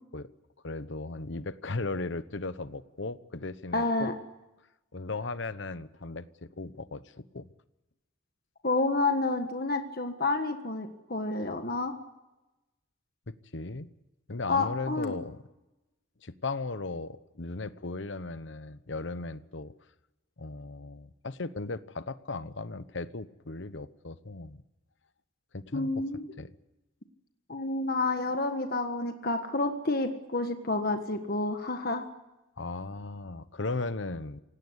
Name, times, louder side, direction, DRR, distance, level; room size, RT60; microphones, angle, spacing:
voice 1, 0.6-4.1 4.9-7.0 7.3-7.5 13.3-13.9 14.3-15.4 16.2-19.7 20.4-24.6 25.5-26.0 26.4-26.5 32.6-34.4, left 3 dB, 65° left, 14 dB, 1.0 m, -37 dB
voice 2, 3.7-4.1 8.6-11.9 14.5-15.1 25.7-26.3 27.5-32.1, left 2 dB, 50° left, 6 dB, 1.5 m, -29 dB
27.0 x 18.0 x 8.2 m, 1.0 s
head